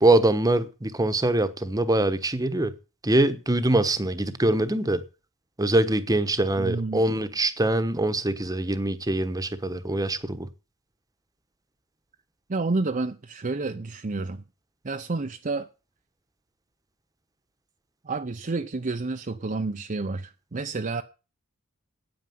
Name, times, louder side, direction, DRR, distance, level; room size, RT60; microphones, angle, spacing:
voice 1, 0.0-2.7 3.0-5.0 5.6-10.5, right 2 dB, 15° right, 1.1 m, -23 dB
voice 2, 6.6-7.0 12.5-14.4 14.8-15.7 18.0-21.0, right 3 dB, 35° right, 0.6 m, -29 dB
9.4 x 8.8 x 9.4 m
head